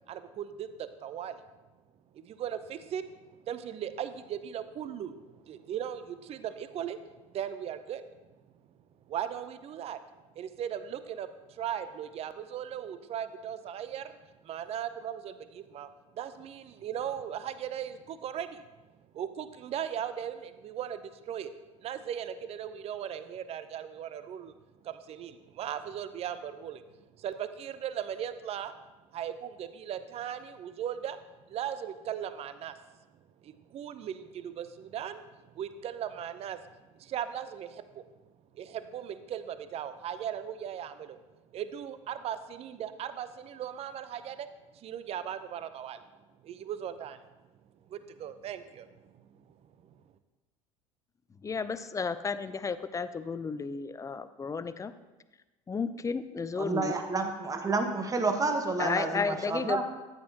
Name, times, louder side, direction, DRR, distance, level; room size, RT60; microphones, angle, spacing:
voice 1, 0.1-1.4 2.2-3.1 3.5-5.2 5.4-7.0 7.3-8.0 9.1-10.0 10.4-14.2 14.4-15.9 16.1-18.6 19.1-21.5 21.8-24.5 24.8-26.8 27.2-28.7 29.1-31.2 31.5-32.7 33.4-35.2 35.5-36.6 36.9-38.0 38.5-41.2 41.5-44.5 44.7-46.0 46.4-47.2 47.9-49.2, right 9 dB, 35° right, 12 dB, 0.7 m, -38 dB
voice 2, 51.4-54.9 55.7-57.3 58.8-59.8, left 5 dB, 20° left, 13 dB, 0.6 m, -33 dB
voice 3, 56.6-59.8, right 3 dB, 20° right, 5 dB, 1.3 m, -30 dB
13.5 x 9.6 x 2.9 m, 1.1 s
figure-of-eight pair, 70°, 17 cm